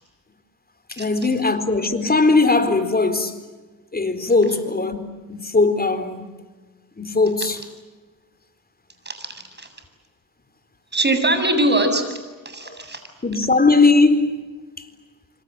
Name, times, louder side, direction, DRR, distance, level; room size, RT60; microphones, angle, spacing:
voice 1, 0.9-3.4 3.9-6.2 7.0-7.6 12.6-12.8 13.2-14.3, left 3 dB, 25° left, 4.2 m, -19 dB
voice 2, 10.9-12.0 12.5-13.0, right 1 dB, 30° right, 7.7 m, -21 dB
27.5 x 26.5 x 7.8 m
cardioid pair, 70°, 37 cm